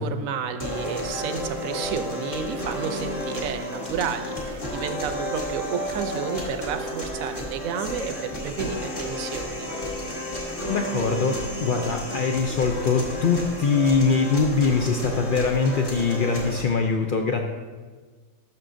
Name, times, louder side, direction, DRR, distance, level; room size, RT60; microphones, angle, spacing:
voice 1, 0.0-9.7, right 7 dB, 75° right, 9 dB, 1.0 m, -31 dB
sound 1, 0.6-16.6, left 1 dB, 40° left, 1.7 m, -32 dB
voice 2, 10.7-17.4, left 4 dB, 80° left, 3 dB, 0.4 m, -23 dB
12.0 x 6.0 x 2.6 m, 1.4 s
omnidirectional pair, 1.5 m